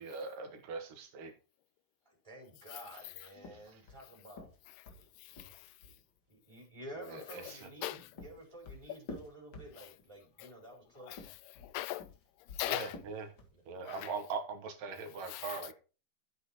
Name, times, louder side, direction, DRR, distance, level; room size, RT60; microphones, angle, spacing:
voice 1, 0.0-1.3 3.5-3.8 6.9-7.6 12.6-13.3 13.7-15.7, right 4 dB, 80° right, 3.2 m, -41 dB
voice 2, 2.0-4.5 4.9-5.4 5.8-5.9 6.3-11.3 13.5-14.2, right 1 dB, 10° right, 4.3 m, -51 dB
sound 1, 3.4-6.0 7.7-10.1 11.0-13.6, left 3 dB, 45° left, 2.0 m, -50 dB
voice 3, 5.2-5.7 7.5-7.6 7.8-8.1 8.9-9.0 9.8-9.9 10.4-10.5 11.0-12.1 12.5-13.0 13.9-14.1 15.3-15.6, left 16 dB, 90° left, 2.2 m, -40 dB
12.0 x 8.1 x 2.9 m
omnidirectional pair, 3.8 m